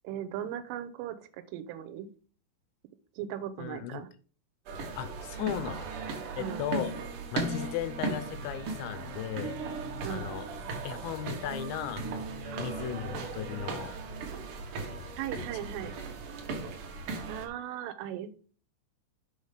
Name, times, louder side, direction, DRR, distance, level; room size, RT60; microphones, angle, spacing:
voice 1, 0.0-1.2 1.5-2.1 3.2-4.1 6.4-6.6 10.0-10.3 12.5-13.0 15.2-15.9 17.3-18.4, right 10 dB, 85° right, 10 dB, 3.3 m, -38 dB
voice 2, 3.6-4.0 5.0-5.9 6.4-6.9 7.3-9.6 10.1-10.5 10.8-12.1 12.6-13.9 14.7-15.2, left 10 dB, 80° left, 11 dB, 2.6 m, -36 dB
sound 1, 4.7-17.5, right 3 dB, 65° right, 2.0 m, -37 dB
8.0 x 5.7 x 5.0 m, 0.40 s
omnidirectional pair, 5.7 m